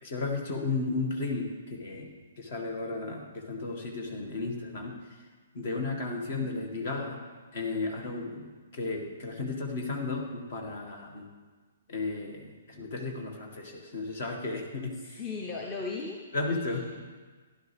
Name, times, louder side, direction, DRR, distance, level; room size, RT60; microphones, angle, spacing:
voice 1, 0.0-4.9 5.5-7.2 7.5-11.3 11.9-15.2 16.3-17.0, left 3 dB, 45° left, 2 dB, 2.0 m, -34 dB
voice 2, 15.2-16.2 16.5-17.0, left 4 dB, 20° left, 0 dB, 1.0 m, -37 dB
15.5 x 11.0 x 3.5 m, 1.4 s
figure-of-eight pair, 120°, 0 cm